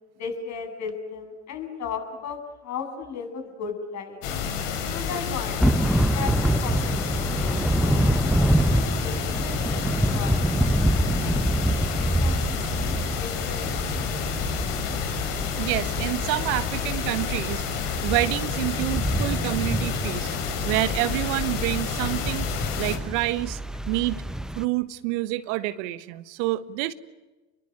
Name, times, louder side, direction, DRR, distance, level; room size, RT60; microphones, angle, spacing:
voice 1, 0.2-4.2 4.9-8.1 8.5-9.9 10.1-14.4, left 6 dB, 40° left, 6 dB, 8.0 m, -37 dB
sound 1, 4.2-23.0, left 7 dB, 65° left, 5.7 m, -30 dB
Thunder / Rain, 5.6-24.6, right 1 dB, ahead, 0.8 m, -26 dB
voice 2, 15.6-20.3 20.6-22.5 22.8-23.6 23.9-24.2 24.5-26.9, right 18 dB, 60° right, 13 dB, 1.5 m, -28 dB
29.5 x 22.0 x 9.0 m, 1.1 s
hypercardioid pair, 90°, 41 cm